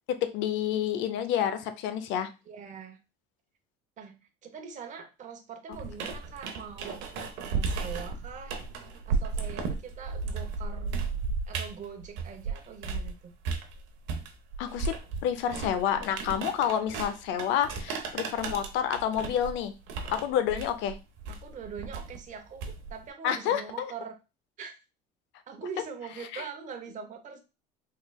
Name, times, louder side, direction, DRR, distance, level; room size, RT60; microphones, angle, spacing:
voice 1, 0.1-2.3 14.6-14.9 15.2-19.7 20.1-21.0 23.2-23.9 26.3-26.4, left 9 dB, 65° left, 10 dB, 0.6 m, -29 dB
voice 2, 2.5-3.0 4.0-7.0 7.4-8.6 9.0-11.0 11.5-13.3 21.3-24.2 24.6-24.7 25.5-27.4, right 6 dB, 35° right, 5 dB, 0.8 m, -43 dB
sound 1, 5.7-13.1 13.4-23.1, right 4 dB, 65° right, 0.8 m, -34 dB
3.7 x 3.2 x 2.3 m, 0.29 s
supercardioid pair, 115°, 21 cm